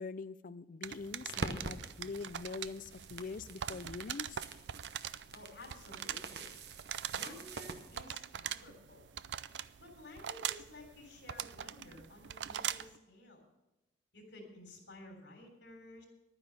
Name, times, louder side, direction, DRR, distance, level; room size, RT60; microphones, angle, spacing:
voice 1, 0.0-4.4, left 4 dB, 50° left, 16 dB, 0.4 m, -43 dB
sound 1, 0.8-13.0, right 10 dB, 80° right, 0.4 m, -43 dB
sound 2, 1.3-8.0, right 3 dB, 65° right, 0.9 m, -45 dB
voice 2, 5.3-6.6 7.1-9.1 9.8-13.4 14.1-16.1, left 1 dB, 85° left, 3 dB, 3.5 m, -53 dB
11.5 x 9.9 x 6.6 m, 0.98 s
head